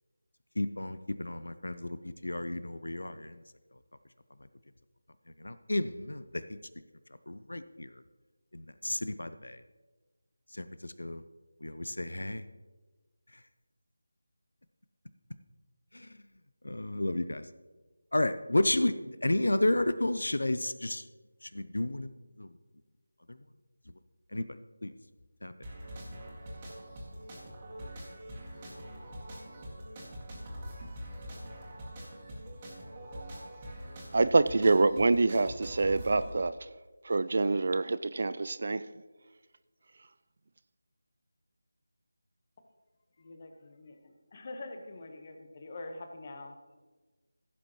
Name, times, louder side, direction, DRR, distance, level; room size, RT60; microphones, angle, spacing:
voice 1, 0.6-3.3 5.4-6.2 7.3-7.9 8.5-9.6 10.6-10.7 11.0-11.2 11.6-12.4 16.6-17.4 18.1-21.0 21.5-22.1 22.4-22.5 24.3-24.4 24.8-24.9 25.4-25.5, left 1 dB, 65° left, 0.5 m, -31 dB
sound 1, 25.6-36.3, equal, 20° right, 2.1 m, -44 dB
voice 2, 34.1-36.5 37.0-38.8, right 3 dB, 40° right, 0.3 m, -26 dB
voice 3, 43.2-43.9 44.3-46.8, left 2 dB, 30° left, 1.1 m, -45 dB
16.0 x 7.4 x 3.1 m
figure-of-eight pair, 165°, 0 cm